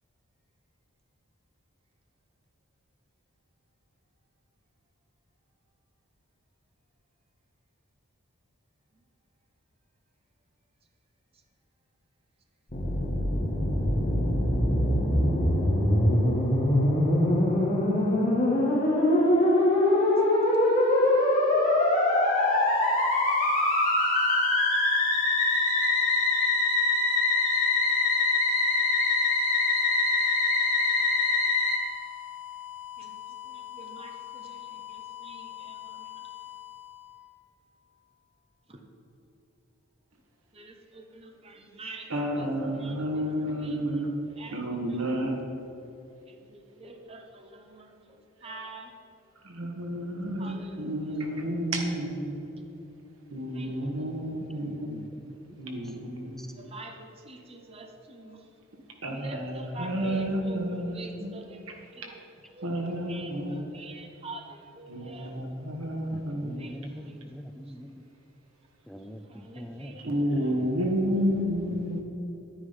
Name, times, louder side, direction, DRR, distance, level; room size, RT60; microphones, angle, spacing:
Musical instrument, 12.7-31.8, left 2 dB, 35° left, 2.3 m, -23 dB
sound 1, 22.1-37.9, left 12 dB, 55° left, 2.1 m, -42 dB
voice 1, 33.5-36.1 38.7-38.8 40.5-43.3 43.6-44.1 44.4-45.3 46.3-47.9 48.4-48.9 50.4-51.2 53.5-54.1 56.6-58.4 59.1-61.6 61.9-62.2 62.5-62.8 63.1-65.3 66.6-67.2 69.3-70.0 70.4-70.6, right 2 dB, 25° right, 1.0 m, -46 dB
voice 2, 42.1-44.1 44.5-45.4 49.5-52.3 53.3-55.1 55.6-56.4 59.0-61.3 62.6-63.6 64.9-66.5 70.0-72.0, equal, 75° right, 1.9 m, -30 dB
voice 3, 66.1-68.0 68.9-70.4 71.9-72.0, equal, ahead, 0.4 m, -43 dB
11.0 x 9.9 x 5.5 m
head